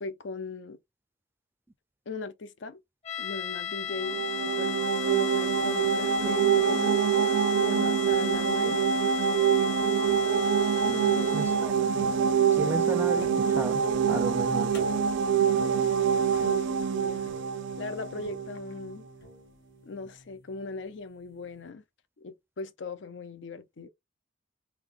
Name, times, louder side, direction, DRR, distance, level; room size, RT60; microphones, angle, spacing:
voice 1, 0.0-0.8 2.1-2.8 3.2-4.8 5.1-7.0 7.6-8.8 10.8-11.5 16.4-17.3 17.8-19.0 19.8-21.8 22.2-23.9, left 3 dB, 80° left, 0.5 m, -39 dB
sound 1, 3.0-11.8, left 9 dB, 35° left, 0.9 m, -36 dB
sound 2, 3.9-18.6, right 7 dB, 85° right, 0.5 m, -25 dB
sound 3, 9.6-20.8, left 2 dB, 60° left, 1.6 m, -47 dB
voice 2, 11.3-11.9 12.6-14.8, right 2 dB, 10° right, 0.4 m, -34 dB
3.8 x 2.8 x 3.3 m
head